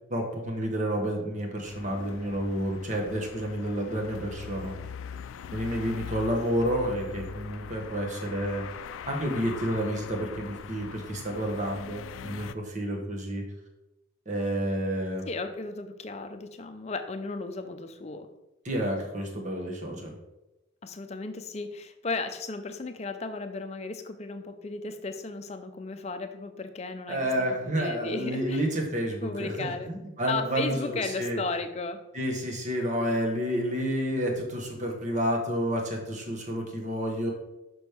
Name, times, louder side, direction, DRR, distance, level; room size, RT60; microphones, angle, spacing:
voice 1, 0.1-4.7 5.5-8.6 9.1-13.4 14.3-15.2 18.6-20.2 27.1-31.4 32.1-37.3, equal, 40° right, 1 dB, 1.2 m, -30 dB
sound 1, 1.7-12.5, left 8 dB, 85° left, 0.3 m, -42 dB
voice 2, 15.2-18.3 20.8-28.6 29.2-29.9 30.3-32.0, left 3 dB, 35° left, 7 dB, 0.5 m, -35 dB
6.1 x 6.1 x 3.4 m, 0.97 s
head